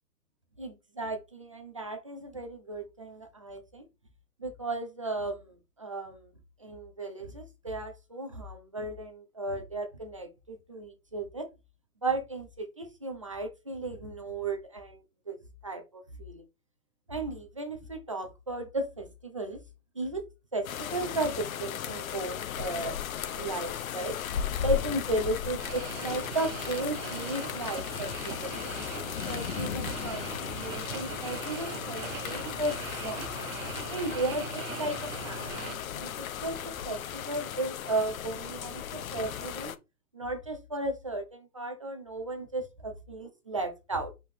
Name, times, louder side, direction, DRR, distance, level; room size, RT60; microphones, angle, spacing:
voice 1, 0.6-3.8 4.4-6.3 6.6-11.5 12.0-15.4 15.6-16.4 17.1-19.6 20.0-20.2 20.5-23.0 23.4-24.2 24.6-28.7 29.3-33.3 33.9-39.7 40.1-44.1, right 2 dB, 20° right, 5 dB, 0.4 m, -35 dB
sound 1, 20.6-39.8, left 9 dB, 60° left, 0.6 m, -36 dB
sound 2, 25.6-35.8, right 7 dB, 55° right, 0.9 m, -41 dB
5.5 x 3.5 x 2.7 m, 0.25 s
figure-of-eight pair, 130°, 49 cm